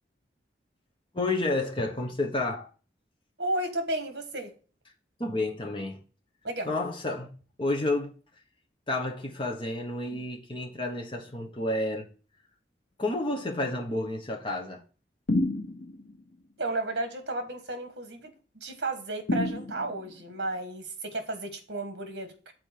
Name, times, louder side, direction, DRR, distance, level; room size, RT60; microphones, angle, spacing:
voice 1, 1.1-2.7 5.2-6.0 6.6-7.3 7.6-8.1 8.9-12.1 13.0-14.8, left 2 dB, 25° left, 1.2 m, -30 dB
voice 2, 3.4-4.5 6.4-6.7 10.1-10.2 16.6-22.5, right 2 dB, 65° right, 1.5 m, -33 dB
sound 1, 15.3-16.1 19.3-20.2, left 1 dB, 75° left, 1.1 m, -29 dB
6.6 x 4.3 x 5.9 m
head